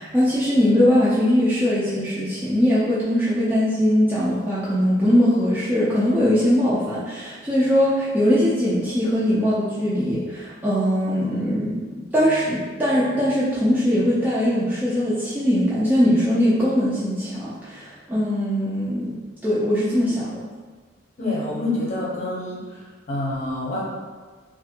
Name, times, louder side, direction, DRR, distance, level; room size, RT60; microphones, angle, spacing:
voice 1, 0.0-19.1 19.4-20.4, equal, 10° right, -10 dB, 0.4 m, -21 dB
voice 2, 21.2-22.8 23.1-23.8, left 2 dB, 35° left, -5 dB, 0.8 m, -27 dB
3.1 x 2.5 x 2.8 m, 1.4 s
head